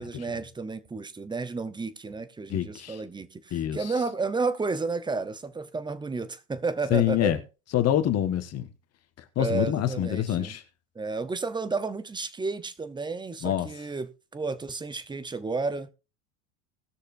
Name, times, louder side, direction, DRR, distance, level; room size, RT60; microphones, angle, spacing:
voice 1, 0.0-7.3 9.4-10.6 10.9-15.9, right 4 dB, 10° right, 0.8 m, -32 dB
voice 2, 2.5-3.0 3.5-3.9 6.9-7.4 7.7-8.7 9.3-10.6 13.4-13.7, left 11 dB, 35° left, 1.6 m, -26 dB
19.5 x 6.6 x 2.6 m
supercardioid pair, 110°, 42 cm